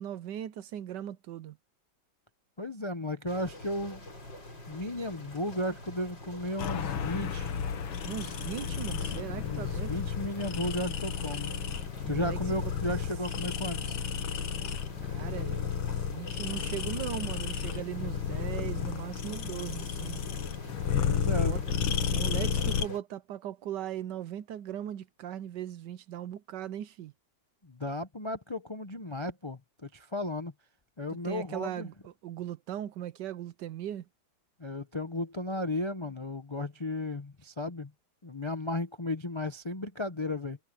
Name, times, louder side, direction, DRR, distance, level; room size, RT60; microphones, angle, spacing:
voice 1, 0.0-1.6 8.0-9.9 12.0-12.7 15.1-20.2 21.4-21.6 22.1-27.1 31.2-34.0, right 11 dB, 70° right, 1.2 m, -39 dB
voice 2, 2.6-4.1 4.7-7.7 9.4-11.6 12.1-14.0 20.9-21.6 27.6-30.5 31.0-31.9 34.6-37.9 38.2-40.6, left 1 dB, 30° left, 0.5 m, -34 dB
sound 1, 3.3-23.0, left 1 dB, 60° left, 7.1 m, -46 dB
sound 2, 6.6-22.9, left 7 dB, 85° left, 2.2 m, -32 dB
omnidirectional pair, 2.1 m